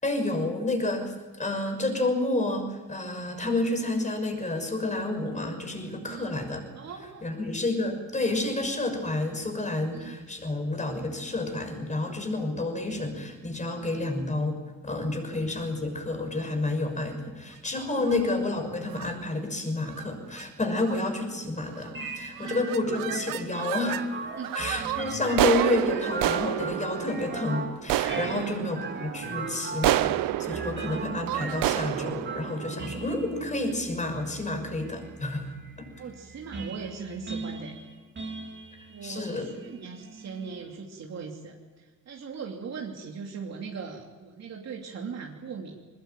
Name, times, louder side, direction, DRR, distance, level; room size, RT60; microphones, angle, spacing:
voice 1, 0.0-1.1 1.4-6.6 7.2-14.6 14.8-24.0 24.5-35.5 35.8-35.9 39.0-39.5, left 2 dB, 20° left, 6 dB, 6.1 m, -30 dB
voice 2, 6.1-6.4 6.7-7.2 9.9-10.2 13.8-14.1 15.2-15.4 18.0-18.1 20.7-20.9 22.3-22.7 24.4-24.7 25.2-25.3 28.2-28.7 36.0-37.8 38.9-45.8, right 5 dB, 55° right, 0 dB, 3.0 m, -40 dB
sound 1, 18.0-18.4 18.9-19.2 19.9-20.1 20.4-20.5 20.8-21.2 21.7-22.1 22.4-24.1 24.4-33.6, right 15 dB, 85° right, 0.7 m, -30 dB
sound 2, 21.9-40.6, right 4 dB, 35° right, 4.0 m, -39 dB
22.0 x 21.0 x 9.2 m, 1.2 s
cardioid pair, 105°, 33 cm